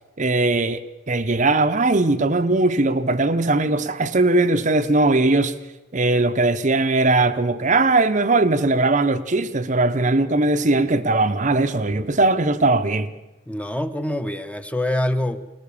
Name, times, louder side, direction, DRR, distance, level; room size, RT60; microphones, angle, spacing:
voice 1, 0.2-5.5 5.9-13.1, right 2 dB, 35° right, 0.8 m, -19 dB
voice 2, 13.5-15.5, left 1 dB, 5° left, 0.9 m, -25 dB
22.0 x 19.0 x 7.0 m
head